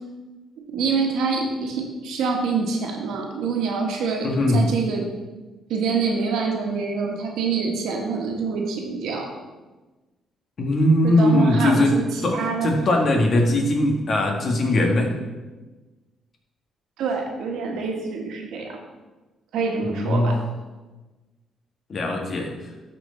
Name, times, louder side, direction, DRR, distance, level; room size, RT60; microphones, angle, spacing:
voice 1, 0.7-5.1 5.7-9.3 11.0-12.7 17.0-18.8 19.5-20.4, right 5 dB, 85° right, 1 dB, 1.5 m, -26 dB
voice 2, 4.2-4.7 10.6-12.0 12.2-12.4 12.6-15.1 19.8-20.4 21.9-22.5, left 1 dB, 50° left, 1 dB, 1.7 m, -20 dB
12.0 x 4.6 x 4.1 m, 1.2 s
cardioid pair, 90°, 0 cm